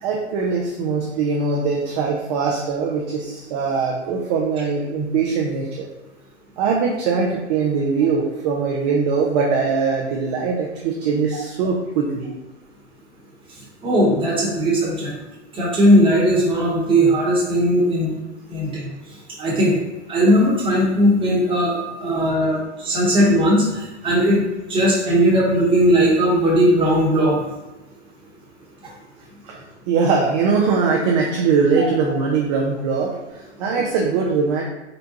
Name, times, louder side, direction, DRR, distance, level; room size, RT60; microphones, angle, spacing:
voice 1, 0.0-5.9 6.6-12.3 29.4-34.6, right 5 dB, 35° right, -1 dB, 0.4 m, -21 dB
voice 2, 13.8-15.1 15.5-18.1 18.5-18.9 19.4-19.8 20.1-21.7 22.0-24.4 24.7-27.4 31.8-31.9, equal, 15° right, -5 dB, 1.0 m, -18 dB
3.9 x 2.2 x 2.7 m, 1.1 s
hypercardioid pair, 120°, 36 cm